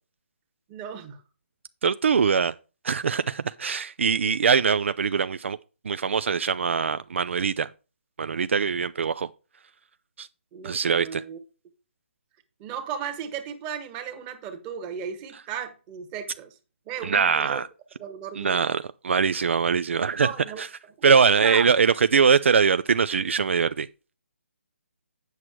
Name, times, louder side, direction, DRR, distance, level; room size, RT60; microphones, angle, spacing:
voice 1, 0.7-1.2 10.5-11.4 12.6-16.5 16.9-17.6 18.0-18.7 20.2-20.6 21.4-21.7, right 8 dB, 20° right, 1.2 m, -35 dB
voice 2, 1.8-2.5 2.8-5.6 5.8-7.7 8.2-9.3 10.2-10.3 10.6-11.2 17.0-17.7 18.4-20.3 20.6-20.7 21.0-23.9, right 6 dB, 65° right, 0.4 m, -22 dB
8.1 x 6.1 x 4.6 m
hypercardioid pair, 160°, 7 cm